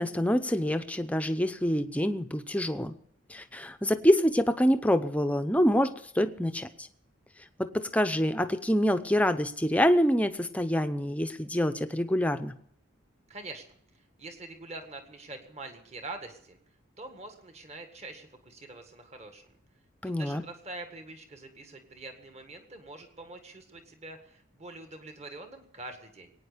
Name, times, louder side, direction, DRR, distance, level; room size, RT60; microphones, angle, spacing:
voice 1, 0.0-2.9 3.3-6.9 7.6-12.5 20.0-20.4, equal, 5° left, 9 dB, 0.7 m, -26 dB
voice 2, 13.3-16.6 17.0-19.5 20.0-26.3, right 2 dB, 35° right, 6 dB, 1.8 m, -45 dB
21.5 x 9.4 x 6.8 m, 0.64 s
head